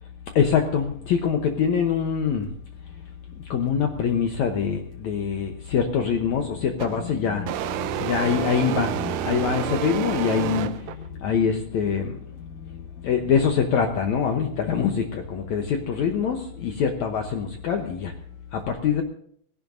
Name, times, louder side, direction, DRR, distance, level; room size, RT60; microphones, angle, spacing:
voice 1, 0.4-2.5 3.5-18.1 18.5-19.0, left 7 dB, 70° left, 4 dB, 1.9 m, -24 dB
sound 1, 6.8-7.0 7.5-11.1, right 12 dB, 80° right, 2.3 m, -29 dB
19.5 x 16.5 x 2.6 m, 0.64 s
omnidirectional pair, 4.3 m